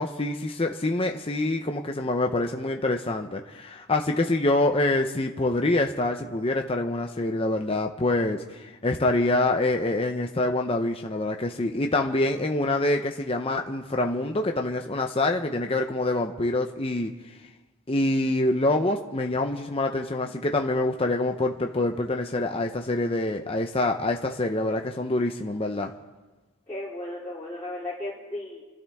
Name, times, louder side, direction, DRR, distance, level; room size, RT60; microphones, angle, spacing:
voice 1, 0.0-17.1 17.9-25.9, left 2 dB, 25° left, 3 dB, 0.7 m, -26 dB
voice 2, 26.7-28.6, left 1 dB, 10° left, -11 dB, 4.1 m, -35 dB
28.0 x 12.5 x 3.6 m, 1.2 s
head